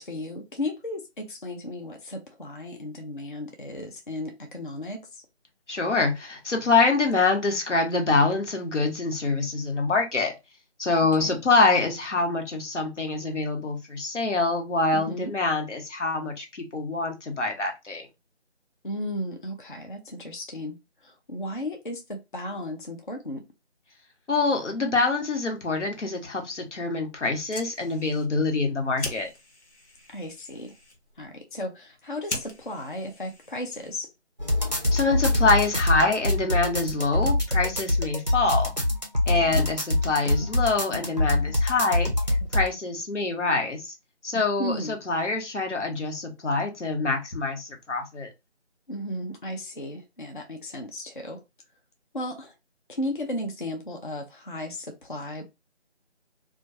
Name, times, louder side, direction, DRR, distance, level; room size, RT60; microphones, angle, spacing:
voice 1, 0.0-5.2 11.2-11.4 14.9-15.3 18.8-23.4 30.1-30.7 31.2-34.1 39.3-39.6 44.3-44.9 48.9-51.4 52.1-52.5 52.9-55.4, left 1 dB, 45° left, 0.4 m, -35 dB
voice 2, 5.7-10.3 10.8-18.1 24.3-29.3 34.9-38.7 39.3-42.1 42.5-43.9 44.2-48.3, left 3 dB, 90° left, 1.0 m, -25 dB
Fire, 27.3-34.2, left 2 dB, 65° left, 0.9 m, -41 dB
sound 1, 34.4-42.7, left 1 dB, 40° right, 0.4 m, -24 dB
2.2 x 2.2 x 2.6 m
figure-of-eight pair, 170°, 35 cm